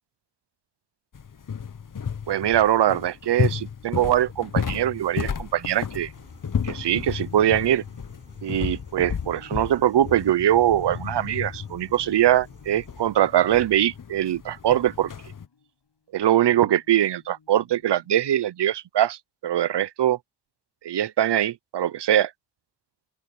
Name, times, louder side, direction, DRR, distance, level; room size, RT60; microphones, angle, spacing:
sound 1, 1.1-15.5, left 7 dB, 50° left, 1.2 m, -33 dB
voice 1, 2.3-6.1 6.6-7.8 8.4-15.1 16.1-20.2 20.8-22.3, right 11 dB, 80° right, 0.7 m, -22 dB
sound 2, 3.9-4.7 6.5-6.6 7.0-8.7 9.0-10.4 10.8-11.7 11.9-13.2 13.5-14.5 15.1-15.9 16.4-18.1, left 5 dB, 75° left, 6.2 m, -54 dB
sound 3, 6.1-13.1, right 1 dB, 15° right, 7.2 m, -53 dB
open air
cardioid pair, 40°, 41 cm